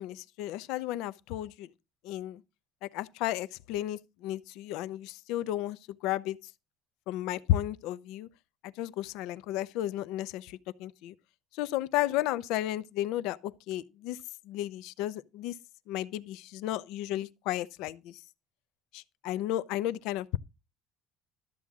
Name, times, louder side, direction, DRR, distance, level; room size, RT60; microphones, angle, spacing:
voice 1, 0.0-1.7 2.0-2.4 2.8-6.4 7.1-8.3 8.8-11.1 11.5-14.2 14.5-15.5 15.9-18.2 18.9-20.4, left 14 dB, 70° left, 0.6 m, -33 dB
13.0 x 8.5 x 3.6 m
cardioid pair, 165°, 0 cm